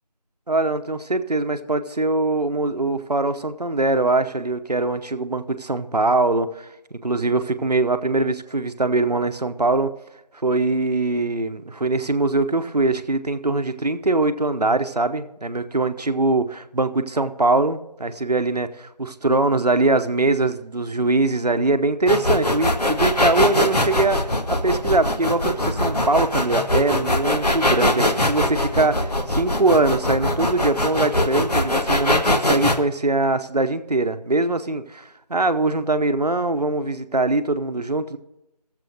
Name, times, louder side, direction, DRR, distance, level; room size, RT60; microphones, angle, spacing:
voice 1, 0.5-9.9 10.4-38.2, right 2 dB, 70° right, 9 dB, 0.8 m, -22 dB
sound 1, 22.1-32.8, left 1 dB, 70° left, 1.1 m, -21 dB
17.0 x 7.5 x 2.6 m, 0.90 s
figure-of-eight pair, 180°, 21 cm